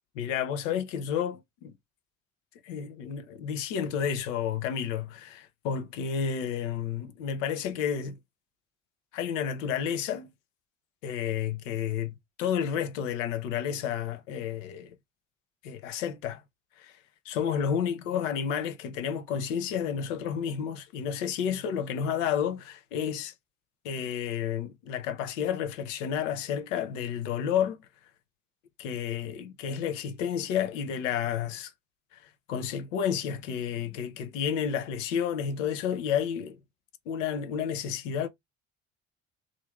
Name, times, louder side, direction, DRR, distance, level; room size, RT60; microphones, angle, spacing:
voice 1, 0.2-1.7 2.6-8.2 9.1-10.3 11.0-15.0 15.6-16.4 16.8-17.0 17.3-23.3 23.8-27.8 28.8-31.7 32.1-32.2 32.5-36.6 37.1-38.3, left 8 dB, 70° left, 0.7 m, -31 dB
2.7 x 2.5 x 3.3 m
figure-of-eight pair, 50°, 39 cm